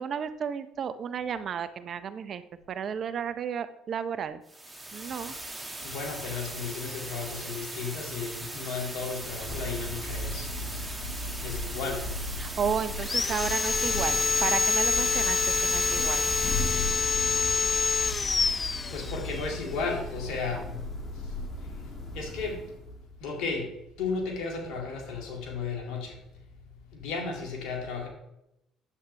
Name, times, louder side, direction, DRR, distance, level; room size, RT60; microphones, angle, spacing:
voice 1, 0.0-2.4 2.7-4.4 4.9-5.3 12.4-16.3 20.5-20.6, right 7 dB, 50° right, 13 dB, 0.6 m, -33 dB
sound 1, 4.4-17.1, right 2 dB, 10° right, 1.9 m, -40 dB
voice 2, 5.8-10.5 11.4-12.1 18.9-20.8 21.1-21.8 22.1-22.6 23.2-26.2 26.9-28.1, left 4 dB, 70° left, 1 dB, 2.2 m, -34 dB
Thunder / Rain, 9.0-23.2, left 2 dB, 45° left, 2.0 m, -36 dB
Sawing, 13.0-19.5, left 4 dB, 30° left, 0.3 m, -27 dB
9.8 x 8.0 x 3.3 m, 0.84 s
hypercardioid pair, 65°, 0 cm